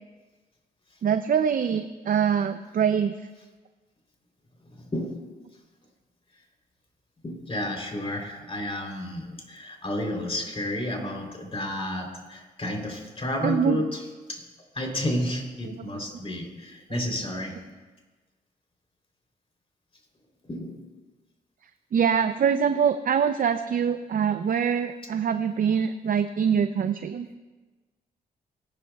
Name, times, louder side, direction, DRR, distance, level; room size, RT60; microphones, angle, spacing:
voice 1, 1.0-3.3 13.4-13.8 15.6-15.8 21.6-27.3, right 7 dB, 55° right, 9 dB, 0.5 m, -24 dB
voice 2, 4.7-5.2 7.2-14.0 14.3-14.4 14.7-17.6 20.5-20.8, left 1 dB, 35° left, 1 dB, 3.4 m, -31 dB
18.5 x 10.5 x 2.3 m, 1.3 s
supercardioid pair, 60°, 17 cm